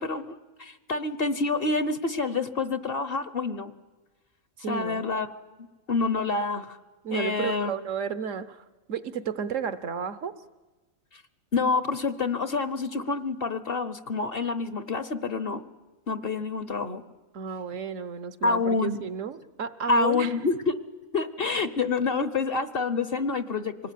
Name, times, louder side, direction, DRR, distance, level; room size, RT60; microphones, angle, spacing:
voice 1, 0.0-3.7 4.7-5.4 5.9-6.8 7.1-7.7 11.5-15.6 16.1-17.0 18.4-19.0 19.9-20.8 21.1-23.7, left 4 dB, 45° left, 13 dB, 1.1 m, -27 dB
voice 2, 4.6-5.0 7.0-10.3 17.3-20.3, right 7 dB, 65° right, 14 dB, 1.3 m, -32 dB
25.5 x 19.5 x 9.3 m, 1.2 s
omnidirectional pair, 1.4 m